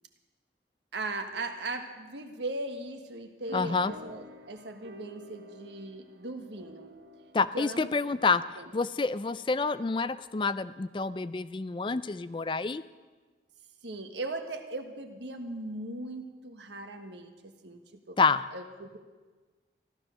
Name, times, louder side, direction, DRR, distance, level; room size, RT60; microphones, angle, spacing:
voice 1, 0.9-6.9 7.5-7.9 8.2-8.7 13.8-18.2 18.5-19.0, right 2 dB, 90° right, 5 dB, 1.5 m, -38 dB
voice 2, 3.5-3.9 7.3-8.4 8.7-12.8 18.2-18.4, left 4 dB, 30° left, 15 dB, 0.3 m, -28 dB
sound 1, 3.5-11.6, equal, 65° right, 1.2 m, -52 dB
15.5 x 12.5 x 6.4 m, 1.3 s
head